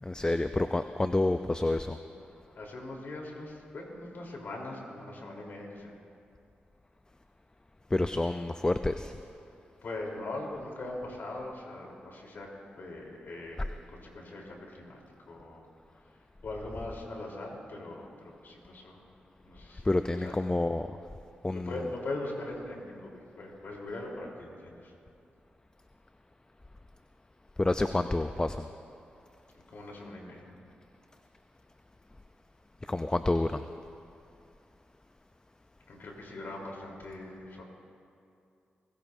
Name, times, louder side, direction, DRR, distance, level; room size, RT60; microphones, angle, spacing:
voice 1, 0.0-2.0 7.9-9.1 19.8-20.9 21.4-21.7 27.6-28.7 32.9-33.6, left 2 dB, 20° left, 9 dB, 0.5 m, -28 dB
voice 2, 2.5-6.0 9.8-12.5 12.8-15.0 15.3-15.7 16.1-19.0 19.4-20.3 21.5-24.9 29.5-30.5 35.9-37.6, left 2 dB, 65° left, -1 dB, 3.6 m, -41 dB
26.5 x 16.0 x 2.7 m, 2.5 s
supercardioid pair, 45°, 4 cm